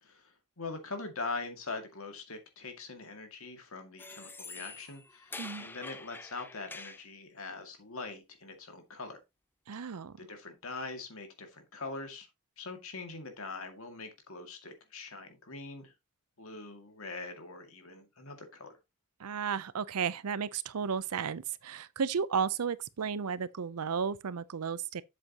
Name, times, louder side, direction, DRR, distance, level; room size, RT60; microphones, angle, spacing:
voice 1, 0.0-9.2 9.7-9.8 10.2-12.3 12.6-15.9 16.4-18.8, left 3 dB, 65° left, 2.2 m, -43 dB
sound 1, 4.0-7.1, left 3 dB, 10° left, 0.4 m, -46 dB
voice 2, 9.7-10.1 19.2-25.0, right 6 dB, 85° right, 0.6 m, -33 dB
7.7 x 7.6 x 2.9 m
head